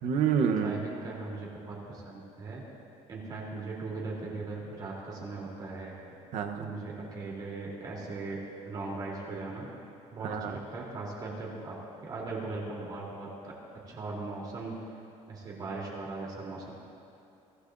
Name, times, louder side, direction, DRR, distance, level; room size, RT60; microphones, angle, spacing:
voice 1, 0.0-0.8 6.3-6.6 10.2-10.6, right 7 dB, 65° right, 5 dB, 1.0 m, -28 dB
voice 2, 0.6-2.6 3.1-6.0 6.5-9.7 10.1-13.5 13.9-14.8 15.3-16.7, right 3 dB, 35° right, -4 dB, 3.4 m, -39 dB
24.0 x 15.5 x 2.7 m, 2.8 s
cardioid pair, 170°, 12 cm